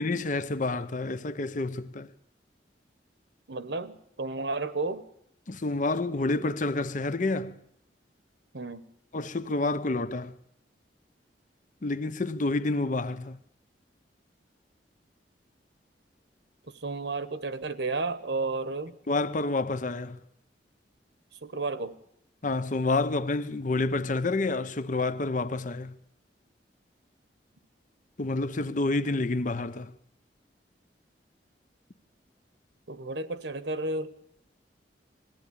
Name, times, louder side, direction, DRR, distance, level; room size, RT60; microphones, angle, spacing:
voice 1, 0.0-2.1 5.5-7.6 9.1-10.4 11.8-13.4 19.1-20.2 22.4-26.0 28.2-29.9, left 2 dB, 45° left, 0.8 m, -29 dB
voice 2, 3.5-5.1 8.5-8.8 16.7-18.9 21.4-22.0 32.9-34.2, right 3 dB, 75° right, 1.2 m, -32 dB
21.0 x 15.5 x 8.5 m
head